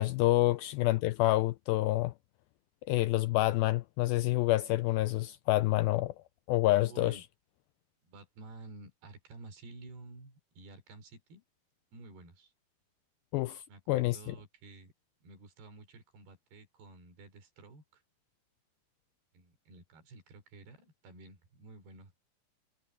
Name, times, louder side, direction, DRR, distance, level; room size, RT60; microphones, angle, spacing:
voice 1, 0.0-2.1 2.9-6.1 6.5-7.2 13.3-14.3, left 17 dB, 85° left, 2.1 m, -28 dB
voice 2, 6.8-7.3 8.0-11.4 11.9-12.5 13.7-14.9 15.2-18.0 19.3-22.2, right 2 dB, 75° right, 5.9 m, -52 dB
omnidirectional pair, 4.6 m